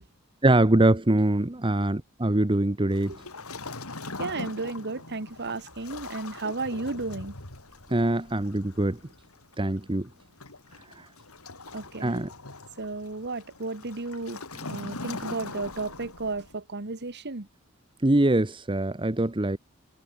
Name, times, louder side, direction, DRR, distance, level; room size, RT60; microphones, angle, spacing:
voice 1, 0.4-3.1 7.9-9.0 9.6-10.1 11.0-11.1 12.0-12.3 18.0-19.6, right 1 dB, 25° right, 1.1 m, -23 dB
Waves surf, 2.9-16.6, left 3 dB, 80° left, 5.0 m, -42 dB
voice 2, 4.2-7.3 11.7-12.2 12.8-14.4 14.7-17.5, right 3 dB, 50° right, 1.6 m, -33 dB
head